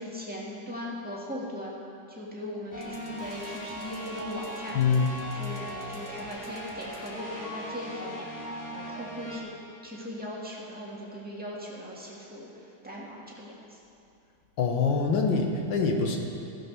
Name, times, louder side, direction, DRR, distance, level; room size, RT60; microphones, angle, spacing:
voice 1, 0.0-1.8 2.1-4.8 5.4-9.5 9.8-13.8, left 1 dB, 5° right, -5 dB, 1.7 m, -39 dB
sound 1, 2.7-9.4, equal, 15° left, 0.8 m, -39 dB
voice 2, 4.7-5.1 14.6-16.2, left 5 dB, 70° left, 2 dB, 1.7 m, -24 dB
15.0 x 5.4 x 6.8 m, 2.7 s
omnidirectional pair, 2.2 m